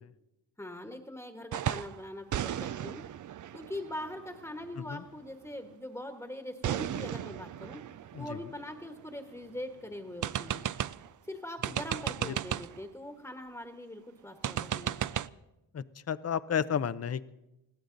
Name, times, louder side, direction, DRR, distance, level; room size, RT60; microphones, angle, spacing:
voice 1, 0.6-3.1 3.5-7.8 8.2-10.6 11.2-15.2, left 1 dB, 5° left, 5 dB, 1.4 m, -42 dB
sound 1, 1.5-2.0 2.3-4.9 6.6-9.4 9.7-9.8 10.2-11.1 11.6-12.8 14.4-15.3, right 10 dB, 50° right, 0.5 m, -35 dB
voice 2, 15.7-17.3, left 8 dB, 40° left, 16 dB, 0.6 m, -32 dB
21.0 x 15.5 x 3.9 m, 0.94 s
cardioid pair, 95°, 40 cm